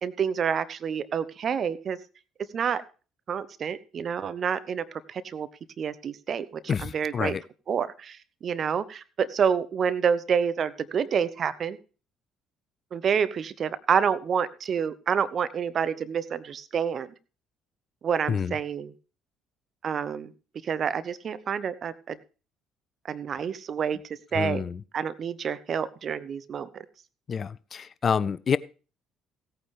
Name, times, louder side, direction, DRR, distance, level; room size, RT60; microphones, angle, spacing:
voice 1, 0.0-2.0 2.5-2.8 3.3-5.5 5.8-7.4 7.7-11.8 12.9-17.1 18.0-18.9 19.8-20.3 20.6-22.2 23.0-24.0 24.3-24.6 24.9-26.8, right 7 dB, 50° right, 15 dB, 0.9 m, -28 dB
voice 2, 6.7-7.4 18.3-18.5 24.3-24.8 27.3-28.6, left 6 dB, 45° left, 19 dB, 0.5 m, -28 dB
16.5 x 9.0 x 3.3 m, 0.35 s
hypercardioid pair, 55°, 0 cm